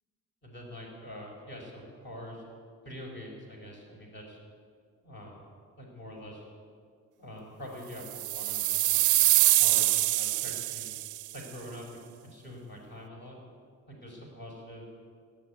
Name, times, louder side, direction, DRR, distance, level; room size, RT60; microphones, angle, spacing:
voice 1, 0.4-2.4 2.8-4.4 5.0-5.4 5.8-6.5 7.2-9.1 9.6-11.0 11.3-11.9 12.2-13.4 13.9-14.8, equal, 35° left, -2 dB, 4.6 m, -44 dB
sound 1, 8.1-11.3, right 16 dB, 75° right, 0.5 m, -25 dB
16.5 x 6.9 x 9.6 m, 2.1 s
cardioid pair, 90°, 30 cm